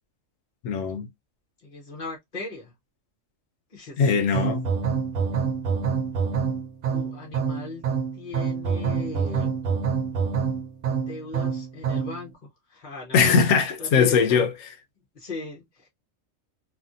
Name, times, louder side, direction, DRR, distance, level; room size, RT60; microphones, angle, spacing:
voice 1, 0.6-1.1 4.0-4.7 13.1-14.5, left 6 dB, 75° left, 1.1 m, -20 dB
voice 2, 1.6-2.7 3.7-4.1 6.9-7.8 8.1-9.6 10.9-14.5 15.1-15.9, left 3 dB, 40° left, 0.9 m, -38 dB
sound 1, 4.3-12.2, right 6 dB, 80° right, 1.2 m, -26 dB
2.8 x 2.6 x 2.4 m
omnidirectional pair, 1.4 m